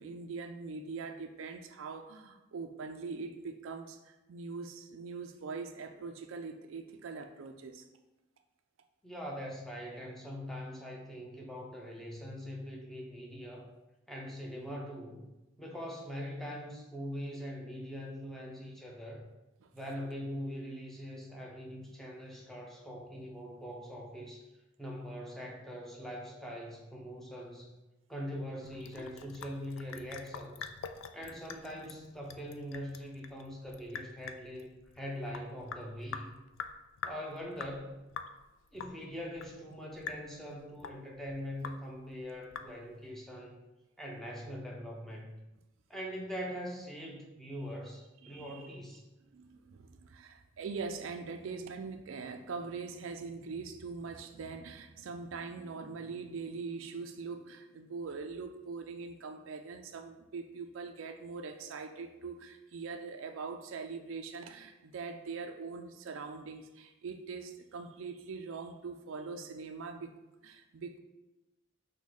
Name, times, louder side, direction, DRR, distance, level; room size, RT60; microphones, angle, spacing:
voice 1, 0.0-7.9 19.6-19.7 48.2-48.8 49.2-70.1 70.4-71.0, right 4 dB, 80° right, 6 dB, 0.4 m, -42 dB
voice 2, 9.0-13.7 14.1-15.2 15.6-19.3 19.7-24.5 24.8-27.7 28.1-30.7 31.1-34.7 35.0-36.3 37.0-37.9 38.7-43.6 44.0-45.4 45.9-49.0, equal, ahead, -2 dB, 0.6 m, -42 dB
Sink (filling or washing) / Drip, 28.6-43.1, left 6 dB, 80° left, 0.3 m, -46 dB
6.0 x 2.2 x 3.9 m, 1.0 s
head